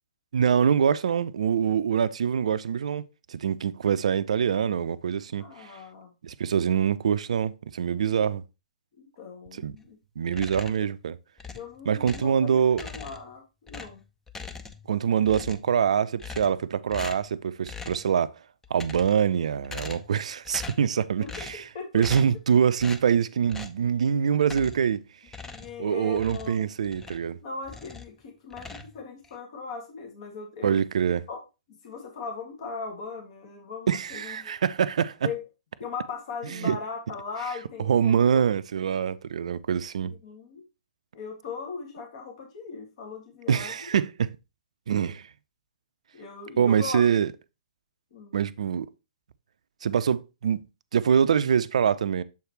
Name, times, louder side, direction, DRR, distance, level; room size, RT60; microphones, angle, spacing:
voice 1, 0.3-3.0 3.3-5.7 6.2-8.4 9.6-9.8 10.2-11.2 11.9-12.8 14.9-18.3 18.7-21.6 21.9-25.0 25.8-27.4 30.6-31.3 33.9-35.3 36.5-36.8 37.8-40.1 43.5-44.3 44.9-45.3 46.6-47.3 48.3-48.9 49.8-50.6 50.9-52.2, right 7 dB, 60° right, 0.4 m, -24 dB
voice 2, 5.4-6.1 9.0-10.0 10.8-10.9 11.5-14.0 21.2-21.3 21.7-22.0 25.4-26.7 27.4-30.8 31.3-31.4 31.8-34.6 35.2-35.4 35.8-38.4 40.1-40.6 41.1-43.9 46.1-47.0 48.1-48.4, left 4 dB, 50° left, 2.0 m, -39 dB
sound 1, 10.3-10.9 11.4-12.4 12.7-13.3 13.7-14.9 15.2-15.8 16.2-16.6 16.9-17.3 17.6-18.1 18.6-19.3 19.6-20.2 20.4-20.9 21.3-21.7 22.0-22.4 22.8-23.1 23.5-23.8 24.4-24.9 25.3-27.3 27.6-28.1 28.5-29.3, left 4 dB, 10° left, 0.5 m, -41 dB
7.0 x 4.8 x 3.1 m
figure-of-eight pair, 120°, 4 cm